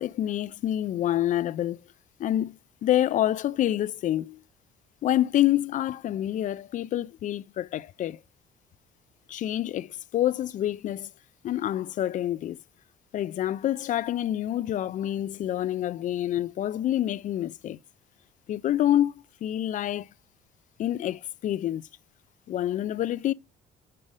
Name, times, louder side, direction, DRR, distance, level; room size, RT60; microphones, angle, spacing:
voice 1, 0.0-1.8 2.2-4.4 5.0-8.2 9.3-11.1 11.4-12.6 13.1-17.8 18.5-19.1 19.4-20.1 20.8-21.9 22.5-23.3, left 12 dB, 50° left, 0.4 m, -27 dB
5.6 x 5.0 x 4.9 m
cardioid pair, 110°, 17 cm